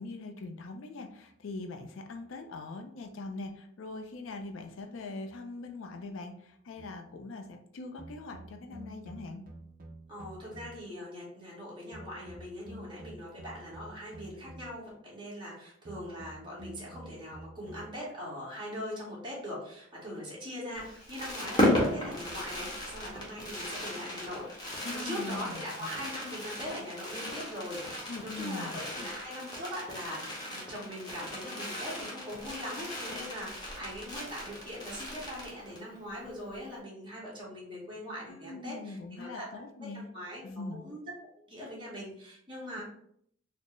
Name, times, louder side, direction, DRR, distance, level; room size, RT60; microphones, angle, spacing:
voice 1, 0.0-9.4 24.8-25.9 28.1-29.1 38.3-40.1 40.4-40.8, left 3 dB, 75° left, 5 dB, 0.4 m, -42 dB
sound 1, 6.8-7.0 8.0-11.0 11.9-14.9 15.8-18.0, right 1 dB, 45° right, 0.5 m, -49 dB
voice 2, 10.1-39.4 40.1-40.4 40.7-41.0 41.5-42.8, equal, 25° right, -6 dB, 1.3 m, -41 dB
Fireworks, 20.7-35.9 36.2-36.3 36.5-36.8, left 1 dB, 20° left, 0.9 m, -35 dB
4.2 x 2.0 x 3.1 m, 0.68 s
head